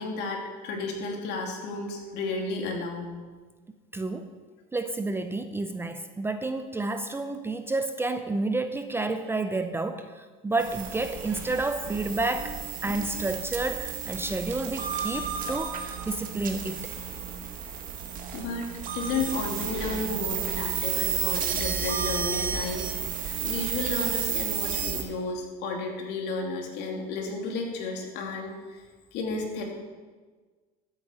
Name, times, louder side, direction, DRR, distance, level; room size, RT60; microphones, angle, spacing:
voice 1, 0.0-3.1 18.3-28.8 29.1-29.6, left 3 dB, 60° left, 1 dB, 2.7 m, -33 dB
voice 2, 3.9-4.3 4.7-12.5 12.8-16.9, right 2 dB, 10° right, 8 dB, 0.6 m, -30 dB
sound 1, 10.6-25.0, right 7 dB, 45° right, 1.7 m, -32 dB
14.5 x 8.2 x 5.0 m, 1.4 s
supercardioid pair, 120°, 20 cm